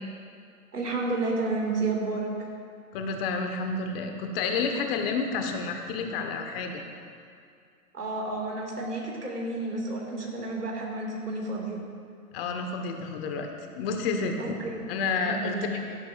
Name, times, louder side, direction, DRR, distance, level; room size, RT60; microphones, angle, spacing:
voice 1, 0.7-2.3 7.9-11.8 14.4-14.8 15.2-15.7, right 3 dB, 85° right, -2 dB, 2.6 m, -31 dB
voice 2, 2.9-6.8 12.3-14.6 14.9-15.8, left 4 dB, 40° left, 4 dB, 1.4 m, -30 dB
17.5 x 12.5 x 2.6 m, 2.3 s
figure-of-eight pair, 115°, 46 cm